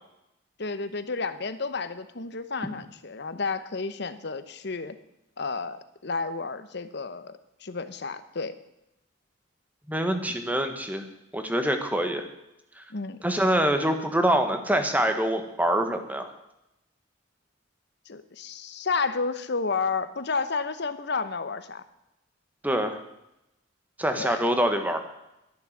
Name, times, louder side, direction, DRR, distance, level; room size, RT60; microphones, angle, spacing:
voice 1, 0.6-5.0 5.4-8.6 10.3-10.4 12.9-13.2 18.1-21.8 24.1-24.4, left 4 dB, 60° left, 12 dB, 1.0 m, -31 dB
voice 2, 9.9-11.0 11.3-12.2 12.8-12.9 13.2-16.3 22.6-23.0 24.0-25.0, right 1 dB, 10° right, 6 dB, 1.4 m, -25 dB
12.5 x 10.5 x 7.4 m, 0.88 s
head